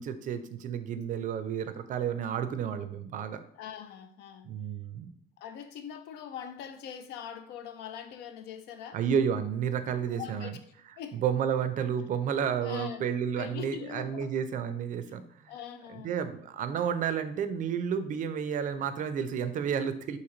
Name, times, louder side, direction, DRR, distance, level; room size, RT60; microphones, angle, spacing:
voice 1, 0.0-3.4 4.4-5.1 8.9-10.6 11.1-15.5 15.9-20.2, right 8 dB, 50° right, 0.4 m, -31 dB
voice 2, 3.6-4.5 5.4-9.0 10.0-10.6 11.0-11.2 12.6-13.0 13.4-14.3 15.5-16.2, left 8 dB, 80° left, 0.4 m, -42 dB
3.0 x 2.7 x 3.8 m
cardioid pair, 110°, 17 cm